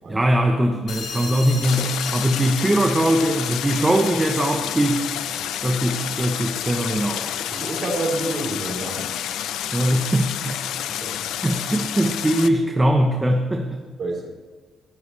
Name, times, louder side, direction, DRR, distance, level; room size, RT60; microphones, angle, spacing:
voice 1, 0.1-5.1 5.6-7.3 9.7-10.8 11.4-13.8, right 1 dB, 10° right, 3 dB, 1.0 m, -21 dB
sound 1, 0.9-6.1, left 5 dB, 60° left, 2.8 m, -38 dB
Stream, 1.6-12.5, left 10 dB, 85° left, 0.7 m, -29 dB
voice 2, 7.5-9.1 11.0-11.2 14.0-14.3, right 2 dB, 40° right, 0 dB, 4.0 m, -28 dB
21.5 x 15.0 x 3.4 m, 1.3 s
cardioid pair, 165°, 0 cm